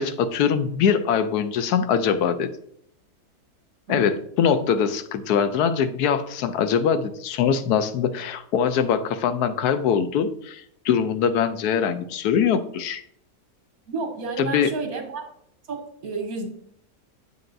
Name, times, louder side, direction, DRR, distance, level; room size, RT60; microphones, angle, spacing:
voice 1, 0.0-2.5 3.9-13.0 14.4-14.7, left 7 dB, 90° left, 11 dB, 1.2 m, -22 dB
voice 2, 3.9-4.2 13.9-15.3 15.7-16.5, right 4 dB, 70° right, 3 dB, 1.7 m, -31 dB
8.4 x 6.7 x 2.6 m, 0.67 s
omnidirectional pair, 1.6 m